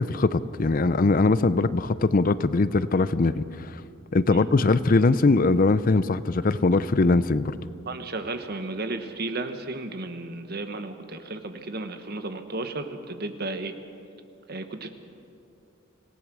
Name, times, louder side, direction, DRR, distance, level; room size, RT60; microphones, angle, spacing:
voice 1, 0.0-3.8 4.1-7.6, left 3 dB, 40° left, 15 dB, 0.5 m, -21 dB
voice 2, 7.9-13.7 14.5-14.9, right 2 dB, 50° right, 8 dB, 1.3 m, -33 dB
26.0 x 17.5 x 6.2 m, 2.6 s
head